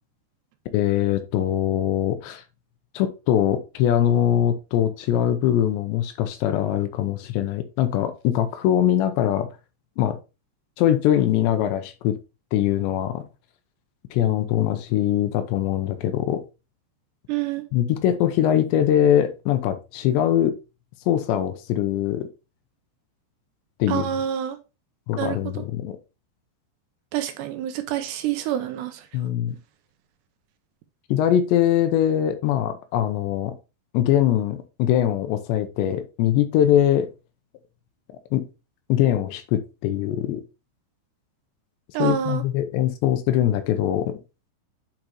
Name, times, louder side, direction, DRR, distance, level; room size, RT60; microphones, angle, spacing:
voice 1, 0.7-2.4 2.9-9.5 10.0-10.2 10.8-12.2 12.5-13.2 14.1-16.4 17.7-20.5 21.1-22.3 23.8-24.1 25.1-26.0 29.1-29.6 31.1-33.5 33.9-37.1 38.3-38.4 38.9-40.4 42.0-44.2, left 11 dB, 85° left, 2.9 m, -22 dB
voice 2, 17.3-17.6 23.9-24.6 25.2-25.6 27.1-29.0 41.9-42.4, right 11 dB, 80° right, 2.7 m, -27 dB
8.9 x 5.2 x 2.9 m
omnidirectional pair, 5.2 m